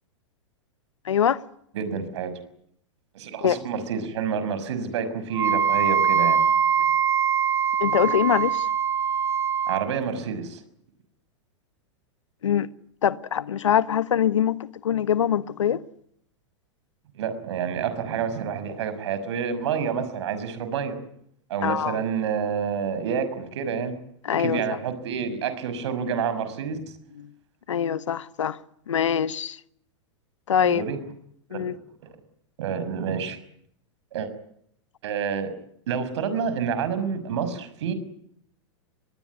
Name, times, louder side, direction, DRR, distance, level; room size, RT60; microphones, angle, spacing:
voice 1, 1.0-1.4 3.4-3.6 7.8-8.7 12.4-12.7 13.0-14.6 14.8-15.8 21.6-22.0 24.2-24.6 27.2-27.3 27.7-28.6 28.9-29.6 30.5-30.8 31.5-31.7, left 9 dB, 85° left, 1.3 m, -23 dB
voice 2, 1.7-2.3 3.1-6.4 9.7-10.6 17.1-21.0 21.5-23.9 24.4-26.8 30.6-31.0 31.5-31.7 32.0-32.1 32.6-33.4 34.1-34.3 35.0-35.5 35.9-37.9, right 7 dB, 70° right, 6.2 m, -28 dB
Wind instrument woodwind instrument, 5.3-9.9, right 8 dB, 20° right, 1.1 m, -22 dB
23.5 x 21.0 x 9.7 m
hypercardioid pair, 115°, 15 cm